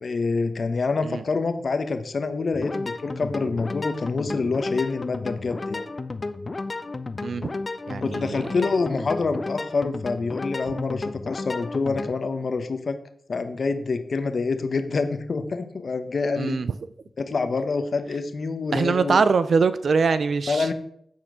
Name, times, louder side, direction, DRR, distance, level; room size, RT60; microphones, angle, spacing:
voice 1, 0.0-5.8 8.0-13.0 13.3-16.6 17.2-19.3 20.5-20.7, left 4 dB, 60° left, 9 dB, 0.9 m, -26 dB
sound 1, 2.5-12.1, left 3 dB, 45° left, 0.6 m, -33 dB
voice 2, 7.9-8.4 16.4-16.7 18.7-20.7, right 5 dB, 70° right, 13 dB, 0.3 m, -23 dB
8.3 x 4.4 x 4.9 m, 0.68 s
cardioid pair, 45°, 0 cm